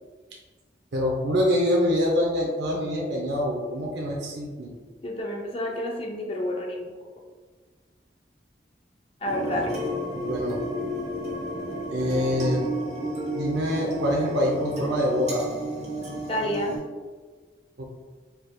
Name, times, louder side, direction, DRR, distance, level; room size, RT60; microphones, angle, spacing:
voice 1, 0.9-4.8 9.5-9.9 10.2-10.6 11.9-12.6 13.3-15.4 17.8-17.9, left 1 dB, 75° right, -2 dB, 0.6 m, -25 dB
voice 2, 5.0-6.9 9.2-9.7 16.3-16.7, left 1 dB, 30° left, 0 dB, 0.5 m, -29 dB
sound 1, 9.2-16.8, right 1 dB, 40° right, 0.9 m, -32 dB
4.6 x 3.3 x 2.2 m, 1.4 s
head